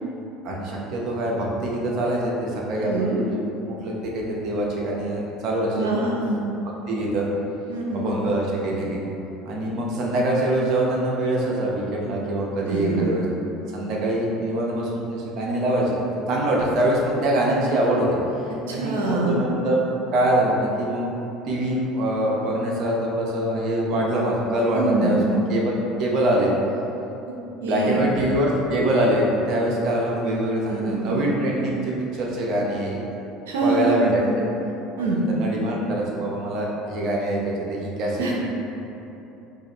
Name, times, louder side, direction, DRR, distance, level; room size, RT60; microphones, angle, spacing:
voice 1, 0.4-3.4 3.7-5.9 6.9-7.3 7.9-9.0 9.5-13.2 13.7-16.0 16.3-18.1 18.7-19.8 20.1-21.1 21.4-26.5 27.6-33.0 33.6-34.5 35.0-38.3, right 1 dB, 60° right, -3 dB, 0.8 m, -24 dB
voice 2, 2.8-3.2 5.7-6.4 7.7-8.1 12.6-13.1 18.7-19.4 24.7-25.4 27.6-28.1 30.7-31.1 33.5-34.3 35.0-35.2 38.2-38.3, right 3 dB, 90° right, -2 dB, 0.6 m, -24 dB
4.9 x 2.5 x 3.0 m, 2.9 s
hypercardioid pair, 85°, 0 cm